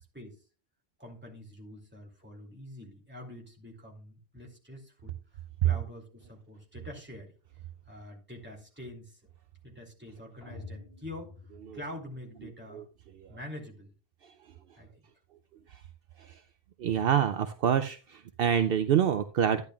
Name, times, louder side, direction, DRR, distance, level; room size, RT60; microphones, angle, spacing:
voice 1, 1.0-7.3 7.9-9.2 9.6-11.3 11.7-12.9 13.3-13.9 14.7-15.0, left 1 dB, 10° right, -2 dB, 2.6 m, -46 dB
sound 1, 10.4-12.5, left 3 dB, 75° left, 3.0 m, -48 dB
voice 2, 16.8-19.6, right 8 dB, 65° right, 9 dB, 0.8 m, -27 dB
12.0 x 10.5 x 2.3 m, 0.36 s
omnidirectional pair, 1.1 m